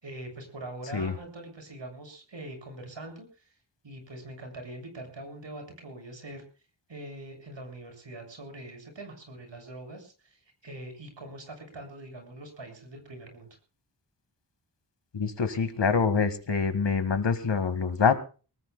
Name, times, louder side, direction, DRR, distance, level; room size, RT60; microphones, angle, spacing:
voice 1, 0.0-3.5 3.8-6.4 6.9-13.5, right 1 dB, 80° right, 4 dB, 7.1 m, -43 dB
voice 2, 15.1-18.2, left 5 dB, 70° left, 8 dB, 2.1 m, -25 dB
24.0 x 20.0 x 2.3 m, 0.36 s
wide cardioid pair, 95°, 44 cm